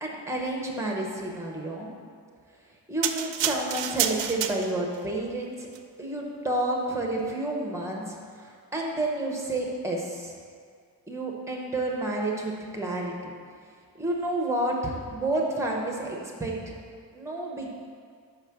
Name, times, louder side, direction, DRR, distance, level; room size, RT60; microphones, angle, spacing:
voice 1, 0.0-1.9 2.9-5.7 6.0-10.3 11.1-13.3 14.0-16.8 17.1-17.7, right 1 dB, 5° right, -1 dB, 0.8 m, -30 dB
sound 1, 3.0-5.0 5.6-5.8, right 10 dB, 90° right, 0.5 m, -29 dB
5.5 x 4.8 x 5.8 m, 2.1 s
wide cardioid pair, 165°, 43 cm